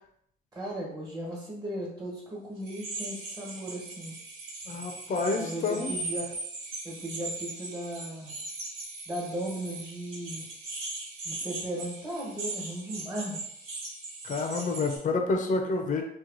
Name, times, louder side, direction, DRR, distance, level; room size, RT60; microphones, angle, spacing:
voice 1, 0.5-4.1 5.3-6.4 6.8-8.4 9.1-10.4 11.2-13.4, right 1 dB, 20° right, -3 dB, 1.4 m, -36 dB
sound 1, 2.6-15.0, right 2 dB, 90° right, 1.4 m, -39 dB
voice 2, 4.7-5.9 14.2-16.0, left 3 dB, 40° left, 3 dB, 0.6 m, -28 dB
3.0 x 2.4 x 3.8 m, 0.71 s
cardioid pair, 90°, 20 cm